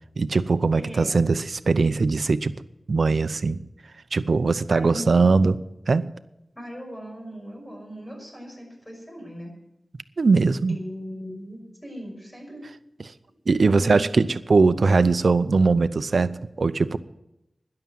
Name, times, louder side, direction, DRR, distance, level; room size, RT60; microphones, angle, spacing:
voice 1, 0.2-2.5 2.9-3.6 4.1-5.6 5.9-6.1 10.2-10.8 13.5-17.0, right 4 dB, 70° right, 13 dB, 0.7 m, -20 dB
voice 2, 0.8-1.2 4.7-5.4 6.5-9.5 10.7-12.6 13.7-14.1, equal, 15° left, 1 dB, 5.9 m, -38 dB
12.5 x 10.5 x 7.6 m, 0.88 s
wide cardioid pair, 80°, 0 cm